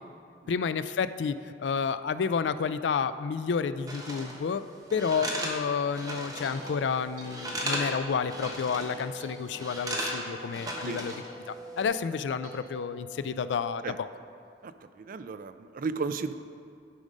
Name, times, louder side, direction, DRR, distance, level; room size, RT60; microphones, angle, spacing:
voice 1, 0.5-4.6 4.9-11.1 11.5-14.1, left 6 dB, 80° left, 13 dB, 0.4 m, -30 dB
sound 1, 3.9-4.4 4.9-6.7 7.0-7.9 8.2-9.1 9.5-11.3 11.6-11.8, right 1 dB, 20° right, 1.2 m, -35 dB
sound 2, 5.9-14.3, equal, 85° right, 2.2 m, -46 dB
voice 2, 14.6-16.3, right 4 dB, 50° right, 11 dB, 0.4 m, -35 dB
11.5 x 5.1 x 5.3 m, 2.3 s
head